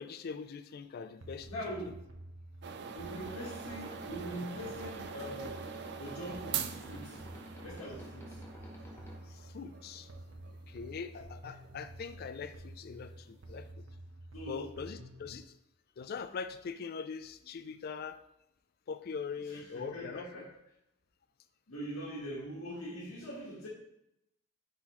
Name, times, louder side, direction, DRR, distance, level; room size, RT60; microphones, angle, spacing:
voice 1, 0.0-1.5 9.2-10.1 10.4-13.8 14.5-15.5 16.0-18.2 18.9-20.4, left 5 dB, 45° left, 11 dB, 0.3 m, -42 dB
sound 1, 1.2-15.4, right 1 dB, 75° right, 0.8 m, -50 dB
voice 2, 1.5-2.0 2.9-5.7 6.0-7.2 7.6-8.4 14.3-14.7 19.5-20.5 21.7-23.7, equal, 85° left, -7 dB, 1.5 m, -42 dB
sound 2, 2.6-13.7, right 8 dB, 55° right, 0.4 m, -44 dB
sound 3, 2.7-9.2, equal, 10° left, 1.0 m, -52 dB
10.0 x 3.9 x 3.0 m, 0.83 s
head